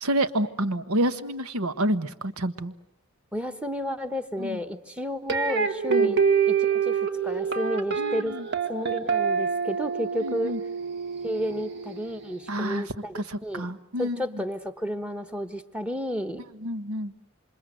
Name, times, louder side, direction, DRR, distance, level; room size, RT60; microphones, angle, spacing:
voice 1, 0.0-2.7 4.4-4.6 5.9-6.2 8.0-8.5 10.2-10.6 12.5-12.9 13.1-14.2 16.6-17.1, right 1 dB, 75° right, 12 dB, 1.4 m, -28 dB
voice 2, 3.3-6.2 6.5-8.4 8.7-10.5 11.2-13.7 14.0-16.4, equal, 5° right, 11 dB, 1.2 m, -32 dB
sound 1, 5.3-12.4, right 6 dB, 50° right, 1.7 m, -26 dB
28.0 x 26.5 x 7.9 m, 0.79 s
head